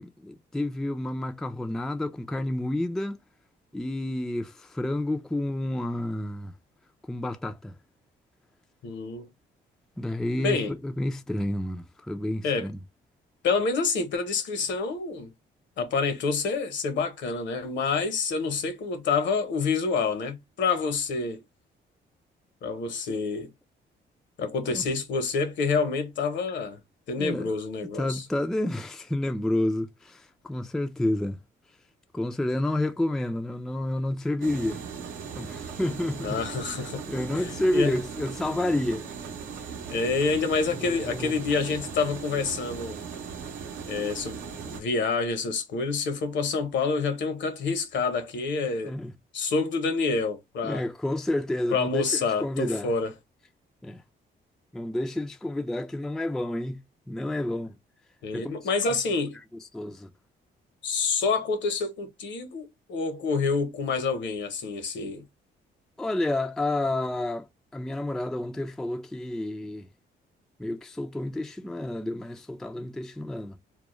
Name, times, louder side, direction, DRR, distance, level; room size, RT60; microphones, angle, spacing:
voice 1, 0.0-3.2 3.7-6.5 7.1-7.7 10.0-12.8 24.6-24.9 27.2-27.5 27.9-31.4 32.1-34.8 35.4-36.4 37.1-39.1 40.7-41.3 48.8-49.1 50.6-52.9 53.8-54.0 54.7-57.7 58.3-58.5 58.8-59.0 59.7-60.1 66.0-67.5 67.7-69.9 70.6-73.6, left 1 dB, ahead, 0.3 m, -30 dB
voice 2, 8.8-9.3 10.4-10.7 12.4-12.7 13.4-15.3 15.8-21.4 22.6-23.5 24.4-26.8 27.1-28.2 36.2-37.0 37.3-38.0 39.9-43.0 43.9-49.0 49.3-50.8 51.7-53.1 58.2-59.4 60.8-65.2, left 4 dB, 70° left, 0.8 m, -28 dB
sound 1, 34.4-44.8, right 6 dB, 75° right, 0.7 m, -38 dB
2.2 x 2.0 x 3.0 m
cardioid pair, 90°, 20 cm